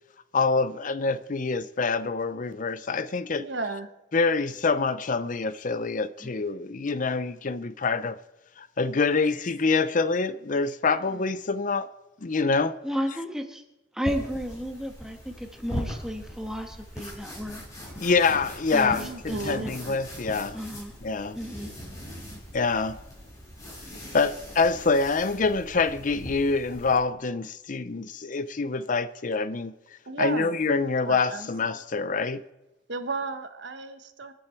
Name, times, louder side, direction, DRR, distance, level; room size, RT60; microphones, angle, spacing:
voice 1, 0.3-3.5 4.1-8.2 8.6-11.9 12.2-12.7 18.0-20.6 21.0-21.4 22.5-23.0 24.1-29.7 30.2-32.4, left 4 dB, 45° left, 0.6 m, -26 dB
voice 2, 3.4-3.9 19.0-19.7 30.1-30.5 31.0-31.5 32.9-34.3, right 3 dB, 70° right, 1.3 m, -33 dB
voice 3, 12.8-13.6 13.9-18.0 18.7-20.0 20.5-20.9 21.3-21.7, equal, 5° right, 1.5 m, -33 dB
sound 1, 14.1-27.0, equal, 20° left, 5.7 m, -40 dB
26.5 x 9.2 x 4.5 m
head